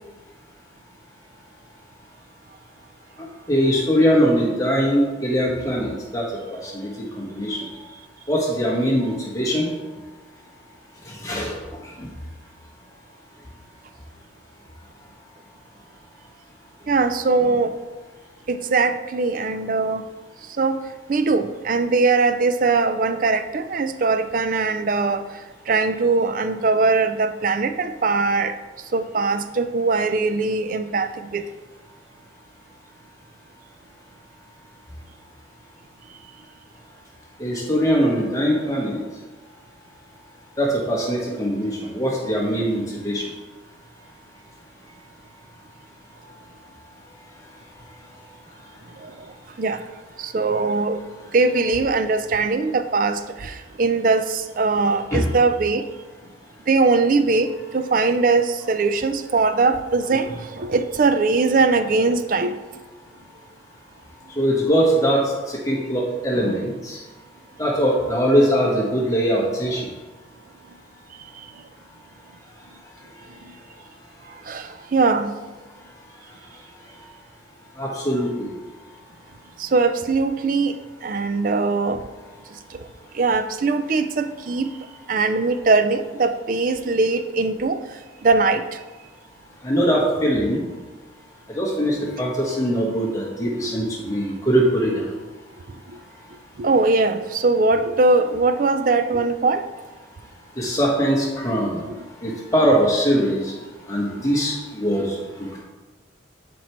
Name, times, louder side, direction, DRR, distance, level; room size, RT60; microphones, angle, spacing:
voice 1, 3.5-7.6 8.3-9.6 11.2-11.5 12.0-12.1 37.4-39.0 40.6-43.2 55.1-55.3 64.3-67.0 67.6-69.9 77.8-78.5 89.6-90.6 91.5-95.1 100.6-101.8 102.2-103.5 103.9-105.2, equal, 15° left, -3 dB, 1.3 m, -21 dB
voice 2, 16.9-17.7 18.5-20.0 20.6-20.8 21.1-25.2 25.7-28.5 28.9-31.4 49.0-49.1 49.6-49.8 50.2-51.0 51.3-55.8 56.7-62.5 66.5-66.6 74.5-75.3 79.6-80.7 81.0-82.0 82.7-82.8 83.1-84.7 85.1-87.8 88.2-88.8 96.6-99.6 102.0-102.1, right 3 dB, 45° right, 10 dB, 0.4 m, -21 dB
11.5 x 4.6 x 3.1 m, 1.2 s
head